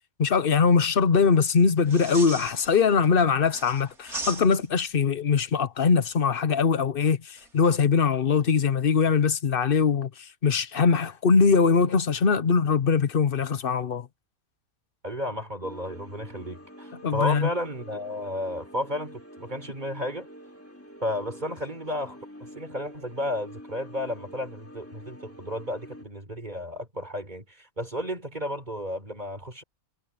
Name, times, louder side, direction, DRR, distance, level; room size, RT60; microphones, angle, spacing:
voice 1, 0.2-14.1 17.0-17.5, left 5 dB, 45° left, 0.9 m, -22 dB
sound 1, 1.8-3.1 3.4-4.9 7.4-7.7, right 2 dB, 85° right, 4.6 m, -38 dB
voice 2, 15.0-20.3 21.0-29.6, left 1 dB, 30° right, 4.9 m, -33 dB
sound 2, 15.6-26.0, equal, 10° left, 2.9 m, -47 dB
omnidirectional pair, 1.5 m